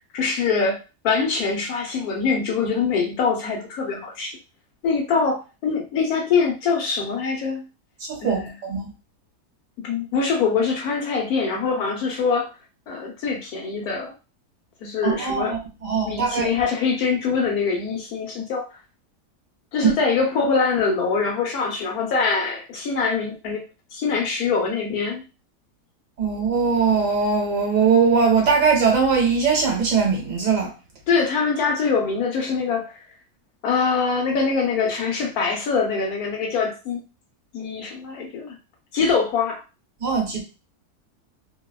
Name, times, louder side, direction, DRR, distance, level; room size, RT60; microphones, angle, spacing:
voice 1, 0.1-0.8 1.0-4.3 4.8-7.7 8.2-8.5 9.8-12.5 12.9-14.1 14.8-15.5 16.0-18.7 19.7-23.6 23.9-25.2 31.1-33.0 33.6-37.0 37.5-38.6 38.9-39.6, left 5 dB, 80° left, 1.3 m, -23 dB
voice 2, 8.1-8.9 15.0-16.5 19.8-19.9 26.2-30.7 40.0-40.4, right 5 dB, 65° right, 1.3 m, -20 dB
3.0 x 2.1 x 2.3 m
omnidirectional pair, 1.6 m